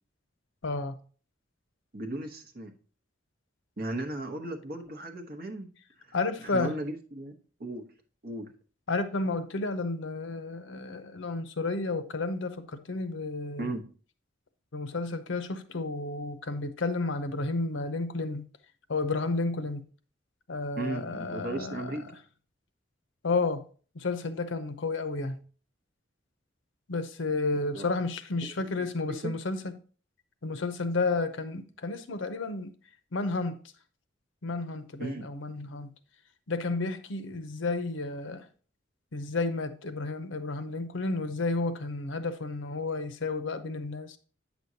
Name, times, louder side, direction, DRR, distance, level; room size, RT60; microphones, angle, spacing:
voice 1, 0.6-1.0 6.1-6.7 8.9-13.7 14.7-18.5 18.9-19.8 20.5-22.0 23.2-23.6 23.9-25.4 26.9-29.8 30.4-32.7 33.1-33.6 34.4-35.9 36.5-38.5 39.1-44.2, left 3 dB, 80° left, 0.7 m, -31 dB
voice 2, 1.9-2.7 3.8-5.7 6.0-6.1 6.4-7.3 7.6-7.9 8.2-8.6 13.6-13.8 20.8-22.1 27.7-27.9 28.4-29.3 35.0-35.3, right 2 dB, 50° right, 1.0 m, -36 dB
8.4 x 6.1 x 2.7 m
head